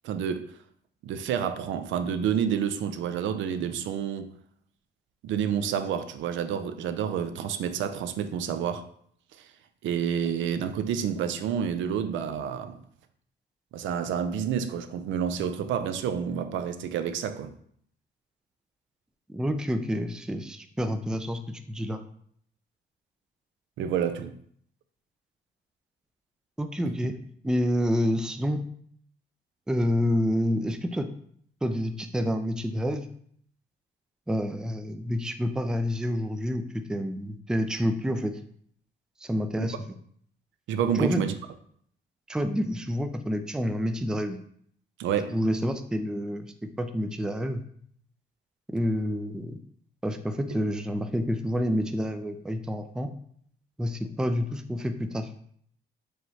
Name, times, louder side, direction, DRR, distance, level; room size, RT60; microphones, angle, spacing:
voice 1, 0.0-0.5 1.0-4.3 5.2-8.9 9.4-9.5 9.8-12.8 13.7-17.5 23.8-24.4 26.9-27.0 39.6-39.7 40.7-41.3 45.0-45.4 50.5-50.6, right 8 dB, 75° right, 0.4 m, -29 dB
voice 2, 19.3-22.0 26.6-27.2 27.4-28.6 29.7-31.1 31.6-33.1 34.3-38.4 39.2-39.8 41.0-41.2 42.3-44.4 45.3-47.6 48.7-49.6 50.0-53.1 53.8-55.3, equal, 5° right, 0.3 m, -28 dB
4.6 x 3.1 x 2.7 m
cardioid pair, 90°, 20 cm